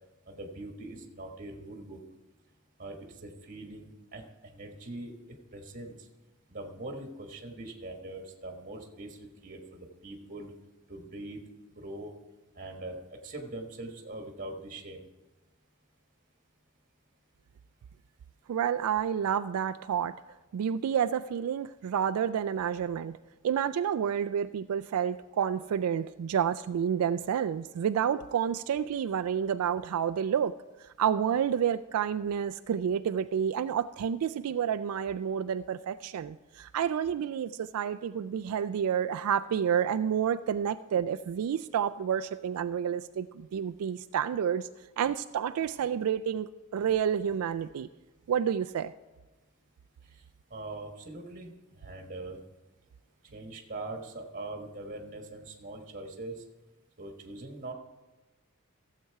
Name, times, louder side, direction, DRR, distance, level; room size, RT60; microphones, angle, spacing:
voice 1, 0.3-2.0 2.8-5.1 5.5-6.1 6.5-9.2 9.4-10.5 10.9-11.4 11.7-12.1 12.5-13.0 13.2-15.0 50.5-52.4 53.3-56.4 57.0-57.7, right 2 dB, 40° right, 3 dB, 1.3 m, -42 dB
voice 2, 18.5-20.1 20.5-23.2 23.4-30.5 31.0-44.7 45.0-47.9 48.3-48.9, right 8 dB, 75° right, 9 dB, 0.3 m, -29 dB
15.5 x 7.6 x 4.7 m, 1.2 s
head